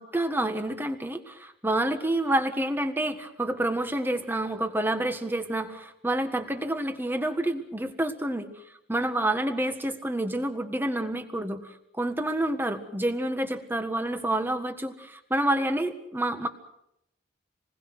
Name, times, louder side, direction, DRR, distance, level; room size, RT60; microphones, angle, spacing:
voice 1, 0.0-8.5 8.9-16.5, right 1 dB, 10° right, 7 dB, 1.6 m, -28 dB
27.5 x 20.5 x 6.2 m, 0.80 s
head